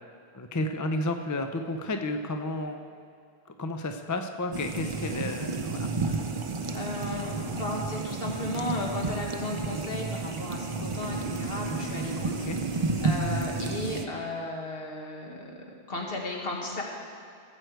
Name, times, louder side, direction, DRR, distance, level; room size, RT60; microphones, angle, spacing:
voice 1, 0.3-2.8 3.6-6.3 12.4-12.6, left 2 dB, 25° left, 6 dB, 0.4 m, -32 dB
sound 1, 4.5-14.1, right 3 dB, 35° right, 0.6 m, -31 dB
voice 2, 6.7-16.8, left 2 dB, 65° left, -1 dB, 1.8 m, -35 dB
16.0 x 8.0 x 4.6 m, 2.3 s
omnidirectional pair, 1.0 m